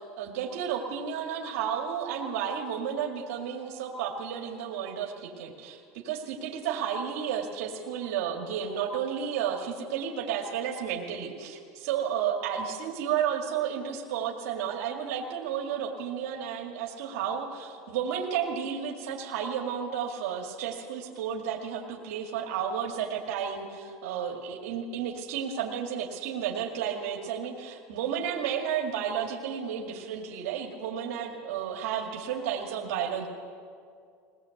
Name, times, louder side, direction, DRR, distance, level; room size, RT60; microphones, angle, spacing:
voice 1, 0.0-33.3, right 8 dB, 90° right, 1 dB, 2.2 m, -32 dB
21.5 x 19.0 x 7.9 m, 2.2 s
supercardioid pair, 125°, 8 cm